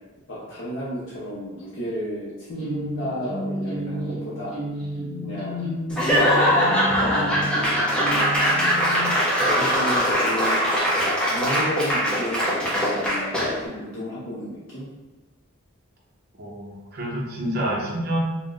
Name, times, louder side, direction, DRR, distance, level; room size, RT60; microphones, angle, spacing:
voice 1, 0.3-4.6 5.2-5.7 6.7-7.7 9.4-10.7 11.2-14.9, equal, 55° left, -8 dB, 0.6 m, -33 dB
sound 1, 2.5-9.0, equal, 25° left, 1.1 m, -31 dB
Laughter / Applause / Crowd, 5.9-13.7, equal, 5° left, 0.4 m, -21 dB
voice 2, 16.4-18.2, right 1 dB, 45° right, -3 dB, 0.6 m, -28 dB
2.4 x 2.1 x 3.7 m, 1.1 s
head